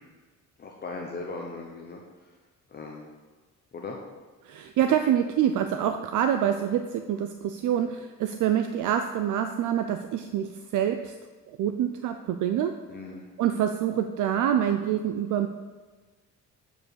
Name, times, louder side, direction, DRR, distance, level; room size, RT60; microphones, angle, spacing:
voice 1, 0.6-2.4 2.7-3.1 3.7-4.0 12.9-13.3, left 3 dB, 30° left, 0 dB, 0.7 m, -38 dB
voice 2, 4.4-11.1 11.5-12.8 13.4-15.5, right 9 dB, 70° right, 8 dB, 0.5 m, -26 dB
7.6 x 4.8 x 6.4 m, 1.4 s
cardioid pair, 175°, 32 cm